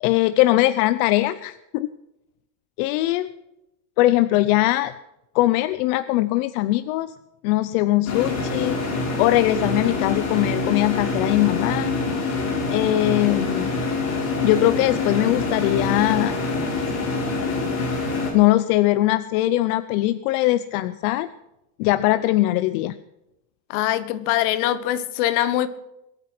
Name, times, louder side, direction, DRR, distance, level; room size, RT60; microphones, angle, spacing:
voice 1, 0.0-1.9 2.8-3.3 4.0-4.9 5.3-7.1 7.4-8.8 9.2-11.9 12.7-13.7 14.4-16.4 18.3-21.3 21.8-22.9, left 16 dB, 90° left, 14 dB, 0.8 m, -21 dB
sound 1, 8.1-18.3, left 3 dB, 35° left, 4.6 m, -25 dB
voice 2, 23.7-25.7, left 13 dB, 70° left, 14 dB, 1.3 m, -23 dB
22.0 x 9.1 x 6.1 m, 0.89 s
cardioid pair, 180°, 43 cm